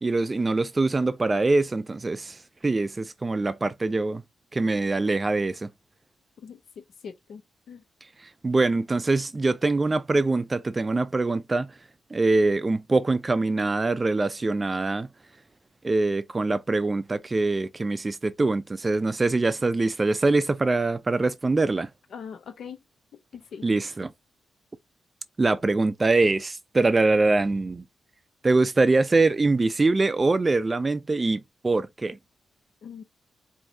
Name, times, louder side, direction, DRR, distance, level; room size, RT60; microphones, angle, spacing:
voice 1, 0.0-2.4 2.6-4.2 4.5-5.7 8.4-11.7 12.1-15.1 15.8-21.9 23.6-24.1 25.4-27.8 28.4-32.2, right 3 dB, 25° right, 0.4 m, -23 dB
voice 2, 7.0-7.4 7.7-7.8 22.1-22.8 23.3-23.7 32.8-33.0, left 7 dB, 70° left, 0.5 m, -40 dB
4.6 x 2.6 x 2.6 m
wide cardioid pair, 125°, 0 cm